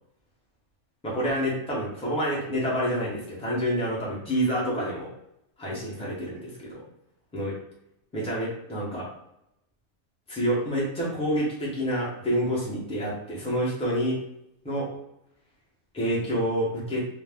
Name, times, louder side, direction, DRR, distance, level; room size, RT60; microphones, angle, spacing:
voice 1, 1.0-5.1 5.6-6.8 7.3-7.6 8.1-9.1 10.3-14.2 14.6-14.9 15.9-17.0, equal, 5° left, -5 dB, 0.5 m, -28 dB
2.4 x 2.0 x 3.4 m, 0.82 s
omnidirectional pair, 1.4 m